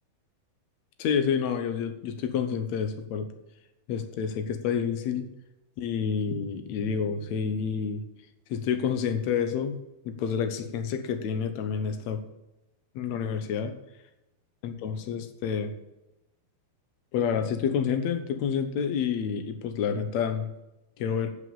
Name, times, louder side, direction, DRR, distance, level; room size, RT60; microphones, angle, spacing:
voice 1, 1.0-3.3 3.9-5.3 5.8-8.0 8.5-9.8 10.1-12.2 13.0-13.7 14.6-15.7 17.1-20.5 21.0-21.3, left 7 dB, 70° left, 7 dB, 1.8 m, -29 dB
10.5 x 6.7 x 7.1 m, 0.95 s
omnidirectional pair, 4.5 m